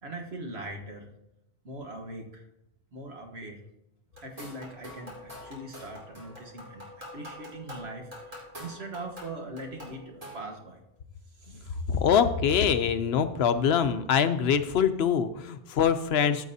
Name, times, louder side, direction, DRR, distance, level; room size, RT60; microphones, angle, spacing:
voice 1, 0.0-1.1 1.6-2.4 2.9-3.6 4.2-6.8 7.1-10.8 11.4-12.0, right 2 dB, 85° right, 2 dB, 1.5 m, -41 dB
sound 1, 4.1-10.6, left 1 dB, 35° right, 2.5 m, -45 dB
voice 2, 11.9-16.5, left 7 dB, 75° left, 10 dB, 0.9 m, -24 dB
14.0 x 7.2 x 2.7 m, 0.88 s
omnidirectional pair, 1.0 m